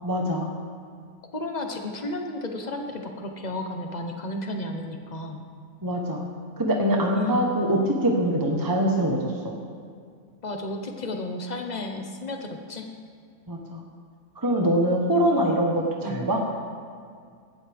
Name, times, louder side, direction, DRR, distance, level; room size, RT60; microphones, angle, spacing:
voice 1, 0.0-0.5 5.8-6.2 6.6-9.5 13.5-13.8 14.4-16.4, right 1 dB, 15° right, 0 dB, 1.0 m, -23 dB
voice 2, 1.3-5.5 7.1-7.4 10.4-12.9 16.0-16.2, left 1 dB, 30° left, 3 dB, 1.1 m, -33 dB
17.0 x 12.5 x 3.5 m, 2.2 s
omnidirectional pair, 1.6 m